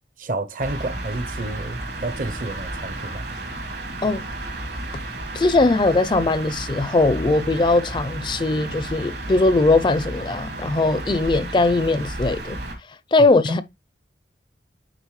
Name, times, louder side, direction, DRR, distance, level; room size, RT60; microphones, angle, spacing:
voice 1, 0.2-3.2 13.5-13.6, right 2 dB, 50° right, 0.7 m, -30 dB
sound 1, 0.6-12.8, right 2 dB, 75° right, 2.5 m, -32 dB
voice 2, 5.3-12.6 13.1-13.6, left 2 dB, 25° left, 0.4 m, -20 dB
9.0 x 3.9 x 3.1 m
head